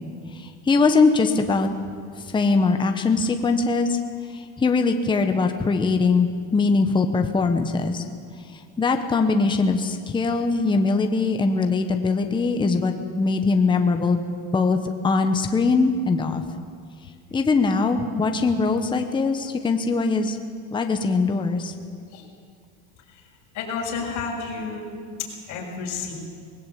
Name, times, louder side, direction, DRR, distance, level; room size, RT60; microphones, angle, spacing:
voice 1, 0.3-1.7 2.3-4.0 4.3-8.0 8.5-14.2 14.5-14.8 15.0-16.4 17.3-20.4 20.7-21.7, left 4 dB, 10° left, 5 dB, 1.1 m, -21 dB
voice 2, 23.5-26.1, left 5 dB, 45° left, -4 dB, 6.0 m, -31 dB
20.0 x 17.0 x 8.5 m, 2.2 s
supercardioid pair, 140°, 43 cm